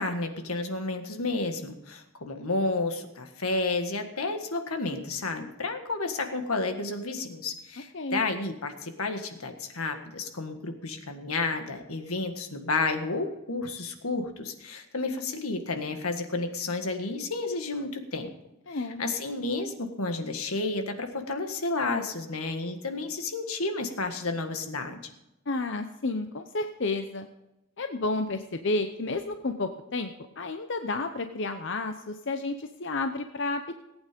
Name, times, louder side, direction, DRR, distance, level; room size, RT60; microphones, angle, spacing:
voice 1, 0.0-18.3 18.7-25.0, left 3 dB, 85° left, 6 dB, 1.7 m, -31 dB
voice 2, 18.7-19.0 25.5-27.3 27.8-33.8, left 2 dB, 55° left, 7 dB, 0.7 m, -31 dB
18.0 x 9.0 x 5.2 m, 0.91 s
head